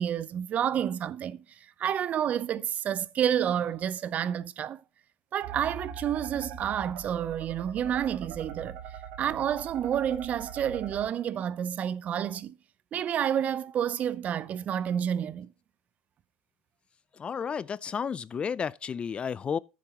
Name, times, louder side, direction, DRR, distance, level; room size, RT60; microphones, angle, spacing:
voice 1, 0.0-1.4 1.8-4.8 5.3-8.8 9.2-12.5 12.9-15.5, right 9 dB, 40° right, 0.6 m, -29 dB
sound 1, 5.4-11.0, right 8 dB, 70° right, 2.2 m, -42 dB
voice 2, 17.2-19.6, left 6 dB, 30° left, 0.4 m, -32 dB
12.5 x 7.5 x 2.9 m
hypercardioid pair, 80°, 4 cm